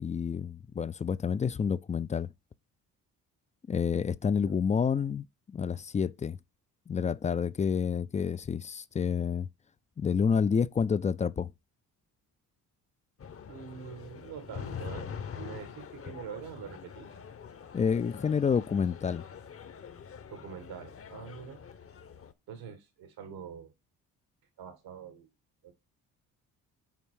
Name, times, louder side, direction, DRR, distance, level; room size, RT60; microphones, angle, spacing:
voice 1, 0.0-2.3 3.7-6.4 6.9-9.5 10.0-11.5 17.7-19.2, left 6 dB, 20° left, 0.3 m, -29 dB
sound 1, 13.2-22.3, left 7 dB, 40° left, 0.8 m, -44 dB
voice 2, 13.5-17.1 20.3-21.6 22.5-23.7 24.6-25.3 25.6-25.7, right 7 dB, 85° right, 1.9 m, -45 dB
5.8 x 4.5 x 6.2 m
cardioid pair, 75°, 36 cm